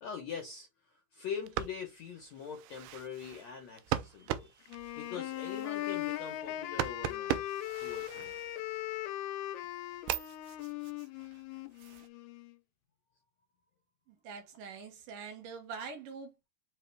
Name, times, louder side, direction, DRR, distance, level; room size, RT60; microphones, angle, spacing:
voice 1, 0.0-0.7 1.1-8.4, left 7 dB, 70° left, 1.7 m, -43 dB
sound 1, 1.3-9.0 9.4-12.1, right 13 dB, 90° right, 1.9 m, -40 dB
Wind instrument woodwind instrument, 4.7-12.6, left 14 dB, 90° left, 2.5 m, -39 dB
voice 2, 14.1-16.5, right 5 dB, 70° right, 2.6 m, -44 dB
5.6 x 2.9 x 3.3 m
omnidirectional pair, 4.3 m